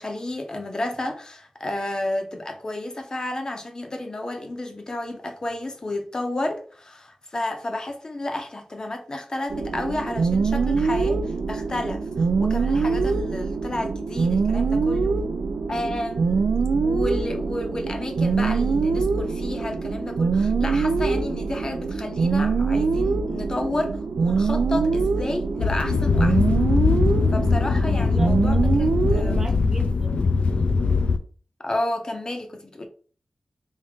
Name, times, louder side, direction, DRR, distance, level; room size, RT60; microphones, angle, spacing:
voice 1, 0.0-15.2 15.7-16.5 16.8-26.4 27.3-29.4 31.6-32.9, left 1 dB, 35° left, 0.6 m, -31 dB
sound 1, 9.5-29.5, right 4 dB, 85° right, 0.4 m, -24 dB
sound 2, 25.6-31.2, left 4 dB, 80° left, 0.3 m, -21 dB
voice 2, 28.1-28.6 29.2-30.2, right 1 dB, 30° right, 0.6 m, -37 dB
3.6 x 2.7 x 3.5 m
wide cardioid pair, 115°, 2 cm